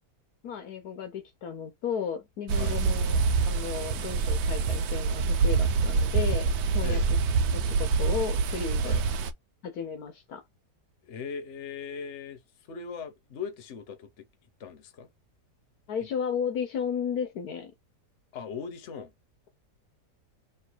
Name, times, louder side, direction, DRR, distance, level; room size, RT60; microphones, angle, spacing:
voice 1, 0.4-3.2 3.5-6.5 6.7-7.2 7.5-9.0 9.6-10.4 15.9-17.7, left 7 dB, 70° left, 1.2 m, -34 dB
sound 1, 2.5-9.3, right 4 dB, 85° right, 1.3 m, -26 dB
voice 2, 11.0-12.4 12.7-14.3 14.6-15.1 16.0-16.1 18.3-19.1, left 6 dB, 50° left, 1.1 m, -39 dB
3.3 x 2.9 x 4.4 m
omnidirectional pair, 1.8 m